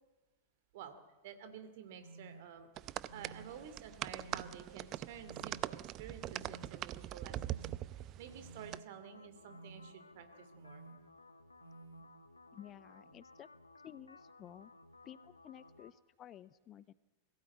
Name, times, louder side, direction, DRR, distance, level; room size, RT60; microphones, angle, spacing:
voice 1, 1.2-2.7 3.1-7.6 7.9-10.9, right 8 dB, 50° right, 9 dB, 2.6 m, -51 dB
sound 1, 2.0-2.4 3.1-3.5 4.1-4.5 5.2-5.6 6.3-6.7 7.3-7.7 8.4-8.8 9.5-9.9 10.5-10.9 11.6-12.0, right 3 dB, 70° right, 2.4 m, -53 dB
sound 2, 2.8-8.8, right 14 dB, 35° right, 0.6 m, -43 dB
sound 3, 9.0-15.9, left 2 dB, 80° left, 0.9 m, -59 dB
voice 2, 12.5-13.5 13.8-14.7 15.0-16.9, left 11 dB, 30° left, 19 dB, 0.6 m, -53 dB
21.5 x 16.0 x 8.5 m, 1.2 s
figure-of-eight pair, 90°, 0 cm